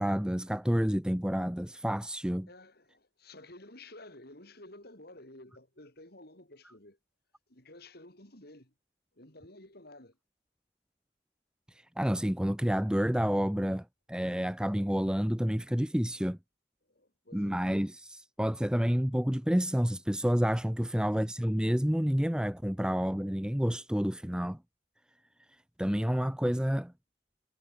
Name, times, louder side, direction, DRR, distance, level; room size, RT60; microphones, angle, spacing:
voice 1, 0.0-2.5 11.7-16.4 17.3-24.6 25.8-26.9, equal, 5° right, 0.7 m, -29 dB
voice 2, 2.5-7.0 7.5-8.7 9.1-10.2 16.8-17.7, left 2 dB, 55° left, 6.1 m, -52 dB
head